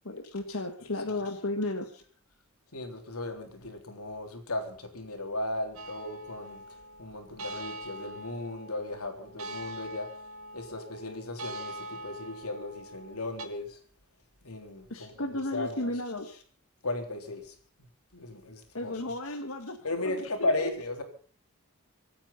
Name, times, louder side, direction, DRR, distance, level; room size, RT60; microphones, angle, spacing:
voice 1, 0.0-1.9 14.9-16.3 18.7-20.5, left 2 dB, 65° left, 3 dB, 1.6 m, -34 dB
voice 2, 2.7-6.6 7.0-10.1 10.5-11.7 12.0-13.7 14.5-15.1 15.5-15.9 16.8-17.4 18.1-19.0 19.8-21.0, left 2 dB, 85° left, 4 dB, 3.7 m, -35 dB
sound 1, 5.8-13.5, right 1 dB, 75° right, 2.2 m, -43 dB
25.0 x 9.0 x 5.7 m, 0.43 s
head